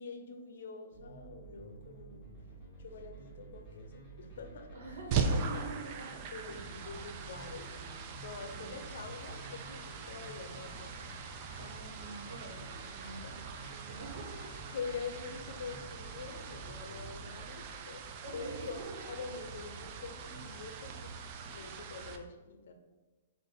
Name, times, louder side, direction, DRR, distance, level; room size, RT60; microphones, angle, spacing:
voice 1, 0.0-2.4 2.8-4.7 5.1-5.7 6.3-11.0 13.0-13.3 14.7-18.0 18.3-18.8 19.1-22.7, left 5 dB, 60° left, 5 dB, 0.7 m, -45 dB
sound 1, 0.9-17.6, right 2 dB, 15° left, 1.5 m, -51 dB
voice 2, 4.7-6.1 8.5-8.9 11.6-13.4 13.7-14.7 18.2-18.9, right 3 dB, 70° right, -1 dB, 1.3 m, -46 dB
sound 2, 5.1-22.2, right 5 dB, 30° right, 0.3 m, -41 dB
4.1 x 2.5 x 4.6 m, 1.2 s
hypercardioid pair, 170°, 0 cm